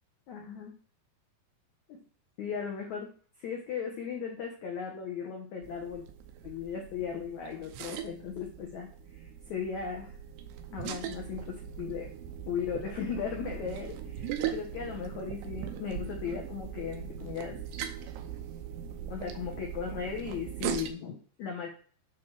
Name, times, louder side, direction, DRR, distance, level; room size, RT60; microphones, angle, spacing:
voice 1, 0.3-0.7 1.9-2.0 2.4-3.1 3.4-6.0 6.4-10.2 10.7-12.1 12.4-17.6 19.1-21.7, left 7 dB, 80° left, 0 dB, 1.6 m, -37 dB
sound 1, 5.6-20.9, right 9 dB, 80° right, 2.8 m, -40 dB
9.4 x 3.3 x 6.1 m, 0.42 s
omnidirectional pair, 5.1 m